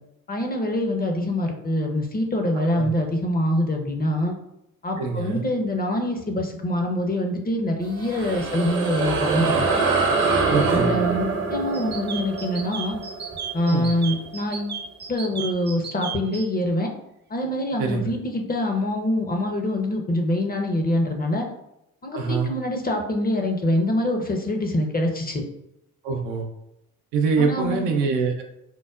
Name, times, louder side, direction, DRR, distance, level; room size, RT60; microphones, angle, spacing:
voice 1, 0.3-4.3 4.8-9.6 10.7-13.0 13.5-14.8 15.1-16.9 17.3-21.5 22.0-25.4 27.4-27.9, left 1 dB, 20° left, 3 dB, 0.7 m, -25 dB
voice 2, 5.0-5.4 10.5-11.0 13.6-13.9 17.8-18.1 22.1-22.5 26.0-26.5 27.1-28.4, right 4 dB, 70° right, 2 dB, 0.7 m, -24 dB
sound 1, 7.8-14.6, right 4 dB, 55° right, 1.0 m, -25 dB
sound 2, 11.7-16.4, right 6 dB, 25° right, 0.5 m, -34 dB
4.5 x 2.1 x 2.4 m, 0.84 s
hypercardioid pair, 50°, 43 cm